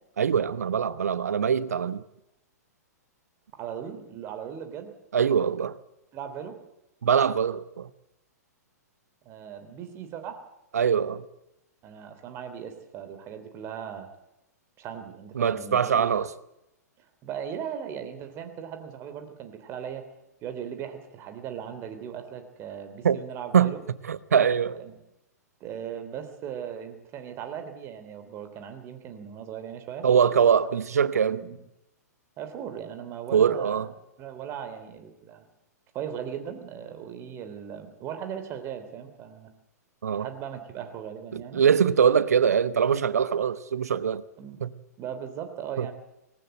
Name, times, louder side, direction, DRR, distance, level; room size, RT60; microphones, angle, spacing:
voice 1, 0.2-2.0 5.1-5.7 7.0-7.9 10.7-11.2 15.3-16.3 23.0-23.2 23.5-23.7 24.1-24.8 30.0-31.4 33.3-33.9 40.0-40.3 41.3-44.2 44.6-44.7 45.8-45.9, right 7 dB, 65° right, 1.0 m, -23 dB
voice 2, 3.5-4.9 6.1-6.6 9.2-10.4 11.8-14.1 14.8-16.2 17.2-20.0 20.4-23.8 24.8-24.9 25.6-30.1 31.3-31.6 32.4-33.8 34.2-35.4 35.9-39.5 40.2-41.6 44.4-44.6 45.0-45.9, right 8 dB, 30° right, 3.2 m, -38 dB
19.5 x 18.5 x 7.9 m
figure-of-eight pair, 110°, 9 cm